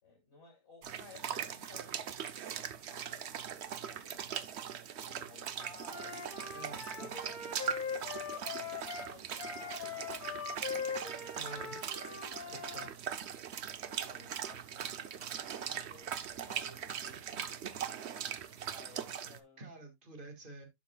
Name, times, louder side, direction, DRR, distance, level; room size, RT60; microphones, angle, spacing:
voice 1, 0.0-4.5 5.0-6.6 7.0-12.2 13.8-18.1 18.7-19.7, left 2 dB, 50° left, 2.9 m, -58 dB
sound 1, 0.8-19.4, right 8 dB, 55° right, 0.9 m, -41 dB
Wind instrument woodwind instrument, 5.8-12.9, left 6 dB, 70° left, 2.0 m, -41 dB
voice 2, 6.5-7.2 11.3-11.8 12.5-13.0 19.6-20.7, right 2 dB, 35° right, 1.9 m, -49 dB
11.5 x 5.9 x 2.2 m
omnidirectional pair, 1.5 m